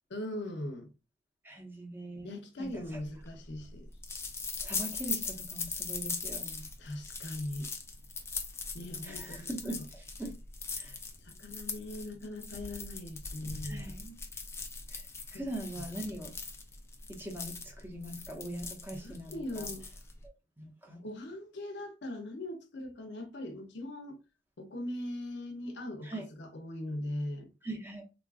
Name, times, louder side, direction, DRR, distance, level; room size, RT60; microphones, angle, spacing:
voice 1, 0.1-0.9 2.2-3.9 6.8-7.7 8.7-9.5 9.7-9.8 11.2-14.0 15.3-15.5 18.9-19.8 21.0-24.2 24.6-27.5, left 1 dB, 55° left, 0.7 m, -40 dB
voice 2, 1.4-2.3 2.6-3.0 4.6-6.7 9.0-10.3 10.8-11.0 13.6-14.1 14.9-15.0 15.3-16.3 17.1-19.7 20.2-21.0 26.0-26.3 27.6-28.0, right 1 dB, 10° right, 0.7 m, -42 dB
sound 1, 2.8-20.3, left 4 dB, 15° left, 0.3 m, -40 dB
3.6 x 2.4 x 2.4 m
head